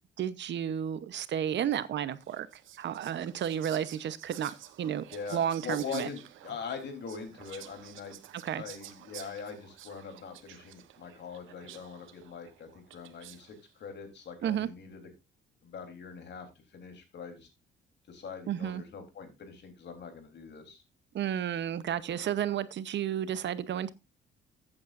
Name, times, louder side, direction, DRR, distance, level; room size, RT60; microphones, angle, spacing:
voice 1, 0.2-5.0 5.3-6.1 8.4-8.6 14.4-14.7 18.5-18.8 21.1-23.9, right 9 dB, 65° right, 0.9 m, -32 dB
Whispering, 2.2-13.6, right 12 dB, 85° right, 1.1 m, -51 dB
voice 2, 5.1-8.2 8.5-15.0 15.6-17.5 18.1-20.8, left 5 dB, 60° left, 3.7 m, -42 dB
14.0 x 8.7 x 2.6 m
cardioid pair, 90°, 20 cm